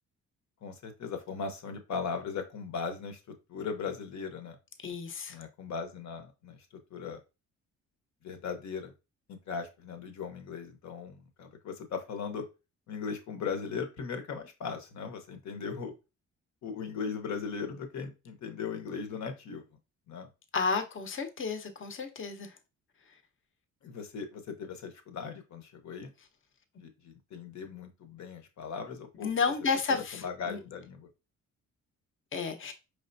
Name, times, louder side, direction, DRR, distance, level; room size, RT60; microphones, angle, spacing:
voice 1, 0.6-3.2 3.5-4.6 5.3-6.6 6.9-7.2 8.2-8.9 9.3-12.4 12.9-15.9 16.6-19.6 20.1-20.3 23.8-26.1 26.8-29.3 29.9-31.1, left 5 dB, 65° left, 1.0 m, -38 dB
voice 2, 4.8-5.4 20.5-22.5 29.2-30.6 32.3-32.7, left 5 dB, 40° left, 0.9 m, -32 dB
4.8 x 3.4 x 2.6 m
cardioid pair, 90°, 30 cm